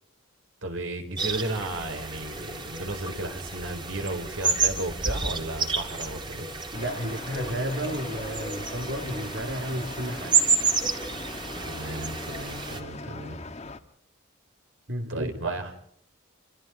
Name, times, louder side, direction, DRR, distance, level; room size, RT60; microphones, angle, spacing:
voice 1, 0.6-6.5 11.6-13.4 15.1-15.7, right 2 dB, 80° right, 5 dB, 4.9 m, -34 dB
sound 1, 1.2-12.8, right 4 dB, 25° right, 2.1 m, -30 dB
sound 2, 6.7-13.8, left 2 dB, 35° left, 1.3 m, -40 dB
voice 2, 6.7-10.5 14.9-15.6, right 1 dB, 65° right, 4 dB, 2.3 m, -32 dB
29.0 x 26.5 x 3.9 m, 0.67 s
head